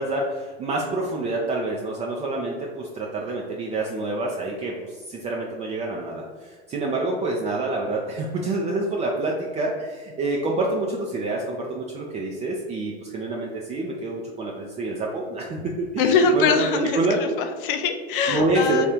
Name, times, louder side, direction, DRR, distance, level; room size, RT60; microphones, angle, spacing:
voice 1, 0.0-17.2 18.3-18.9, right 2 dB, 20° right, -2 dB, 0.4 m, -27 dB
voice 2, 16.0-18.9, left 5 dB, 55° left, 6 dB, 0.6 m, -23 dB
3.5 x 2.4 x 4.4 m, 1.4 s
figure-of-eight pair, 90°, 33 cm